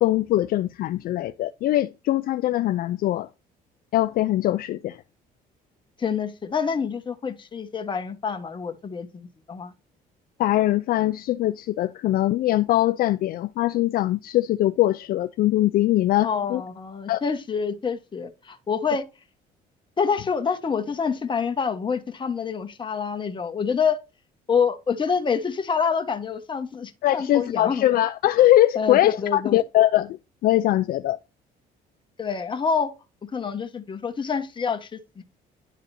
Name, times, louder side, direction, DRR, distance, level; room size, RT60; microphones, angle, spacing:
voice 1, 0.0-3.3 3.9-5.0 10.4-16.6 17.1-17.2 27.0-30.2 30.4-31.2, left 14 dB, 60° left, 0.4 m, -22 dB
voice 2, 6.0-9.7 16.2-19.0 20.0-24.0 24.5-27.8 28.7-29.6 32.2-32.9 33.2-35.2, left 6 dB, 30° left, 1.4 m, -27 dB
11.0 x 4.0 x 2.7 m
cardioid pair, 110°, 17 cm